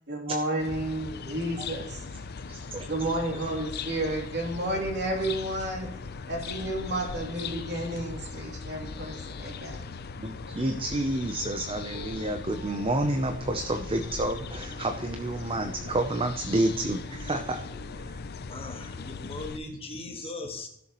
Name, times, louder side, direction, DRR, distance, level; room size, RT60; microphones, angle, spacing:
voice 1, 0.1-2.0 2.9-5.9 6.3-9.8, right 1 dB, 55° right, 0 dB, 3.0 m, -31 dB
sound 1, 0.6-19.6, left 4 dB, 50° left, 0.5 m, -39 dB
voice 2, 2.5-2.9 3.5-3.6 10.2-17.6, right 1 dB, 25° right, 6 dB, 0.6 m, -29 dB
sound 2, 11.9-16.8 17.1-18.2, right 1 dB, ahead, 2.5 m, -49 dB
voice 3, 18.5-20.7, left 2 dB, 30° left, 3 dB, 1.6 m, -38 dB
16.0 x 7.0 x 3.1 m, 0.73 s
head